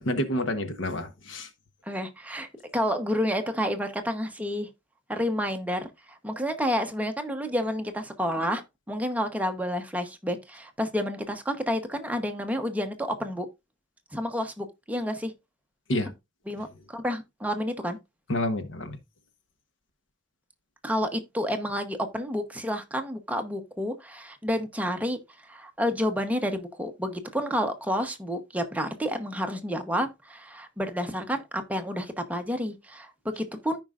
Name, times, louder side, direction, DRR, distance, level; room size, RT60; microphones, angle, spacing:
voice 1, 0.1-1.5 15.9-16.1 18.3-19.0, left 1 dB, 85° left, 1.1 m, -28 dB
voice 2, 1.9-2.5 2.7-4.7 5.1-13.5 14.1-15.3 16.5-18.0 20.8-33.8, equal, 10° right, 0.9 m, -30 dB
14.0 x 5.2 x 2.4 m
head